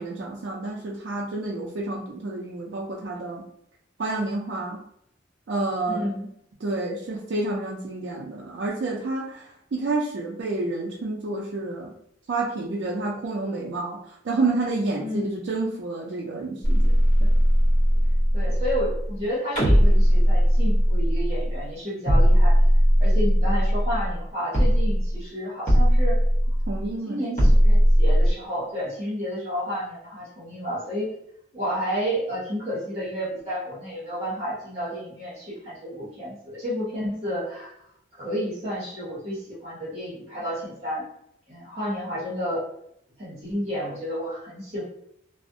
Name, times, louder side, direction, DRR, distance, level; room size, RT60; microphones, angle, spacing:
voice 1, 0.0-3.4 4.0-4.8 5.5-6.1 6.6-11.9 12.3-17.3 26.7-27.5, right 2 dB, 65° right, -2 dB, 0.4 m, -29 dB
voice 2, 5.9-6.3 15.0-15.3 18.3-22.6 23.0-26.2 27.0-31.1 31.5-37.7 38.2-41.1 41.5-42.6 43.2-44.8, equal, 35° right, -9 dB, 0.9 m, -31 dB
sound 1, 16.6-19.2 19.6-21.7 22.1-24.3 24.5-25.2 25.7-26.9 27.4-28.3, equal, 45° left, 1.0 m, -19 dB
2.4 x 2.0 x 2.6 m, 0.71 s
head